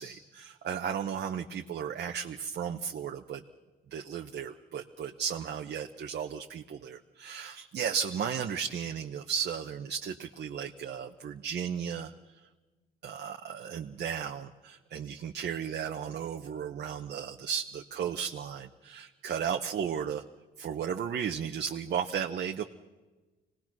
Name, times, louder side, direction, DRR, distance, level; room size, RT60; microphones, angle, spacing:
voice 1, 0.0-3.4 3.9-12.1 13.0-20.2 20.6-22.6, right 7 dB, 55° right, 4 dB, 1.0 m, -35 dB
25.0 x 19.0 x 6.1 m, 1.2 s
cardioid pair, 90°, 20 cm